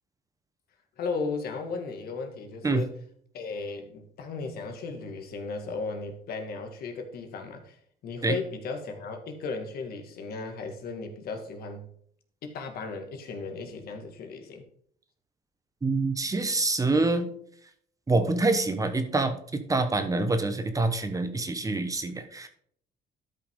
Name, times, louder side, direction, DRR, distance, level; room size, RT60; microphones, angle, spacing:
voice 1, 1.0-2.9 3.3-7.8 8.0-11.9 12.4-14.6, left 4 dB, 65° left, 5 dB, 1.9 m, -35 dB
voice 2, 15.8-17.3 18.1-22.5, right 3 dB, 20° right, 9 dB, 1.1 m, -26 dB
12.5 x 5.7 x 3.6 m, 0.63 s
cardioid pair, 110°, 17 cm